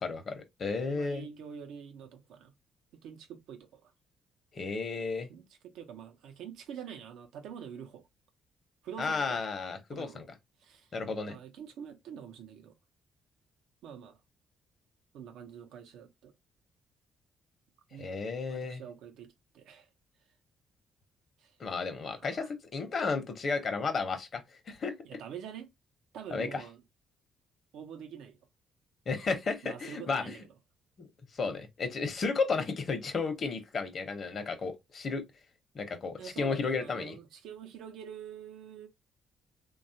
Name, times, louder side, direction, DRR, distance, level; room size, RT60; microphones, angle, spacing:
voice 1, 0.0-1.3 4.5-5.3 9.0-10.2 10.9-11.4 18.0-18.8 21.6-24.4 24.7-24.9 26.3-26.6 29.1-30.3 31.0-31.1 31.4-35.2 35.7-37.2, left 4 dB, 50° left, 0.7 m, -33 dB
voice 2, 0.8-2.5 2.9-3.9 5.3-8.1 8.8-9.4 9.9-10.3 10.6-10.9 11.3-12.7 13.8-14.2 15.1-16.3 17.9-18.1 18.5-19.9 21.4-21.6 22.1-22.5 25.0-25.7 26.1-26.8 27.7-28.4 29.6-30.5 36.2-38.9, right 8 dB, 85° right, 0.6 m, -46 dB
3.1 x 2.3 x 2.7 m
cardioid pair, 90°, 0 cm